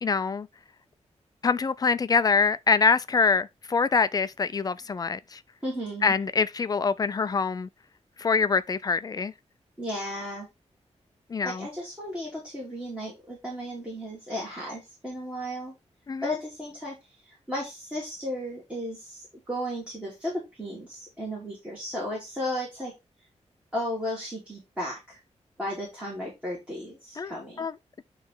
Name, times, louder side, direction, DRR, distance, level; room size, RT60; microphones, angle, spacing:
voice 1, 0.0-0.5 1.4-5.4 6.0-7.7 8.2-9.3 11.3-11.7 16.1-16.3 27.2-27.7, left 5 dB, 35° left, 0.4 m, -25 dB
voice 2, 5.6-6.1 9.8-10.5 11.4-15.7 16.2-22.9 23.7-25.2 25.6-27.7, equal, 10° right, 2.7 m, -34 dB
9.1 x 3.2 x 3.8 m
wide cardioid pair, 165°, 12 cm